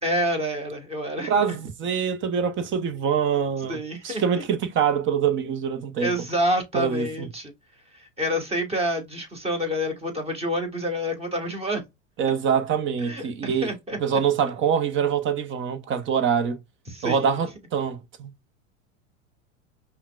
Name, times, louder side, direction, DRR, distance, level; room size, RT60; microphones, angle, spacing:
voice 1, 0.0-1.6 3.7-4.2 6.0-7.5 7.9-11.8 13.0-14.2 16.9-17.3, equal, 15° right, 1.4 m, -28 dB
voice 2, 1.3-3.8 4.0-6.1 6.7-7.3 12.2-13.7 14.0-16.6 17.0-18.3, right 7 dB, 30° right, 0.8 m, -24 dB
5.4 x 2.2 x 2.3 m
hypercardioid pair, 90°, 39 cm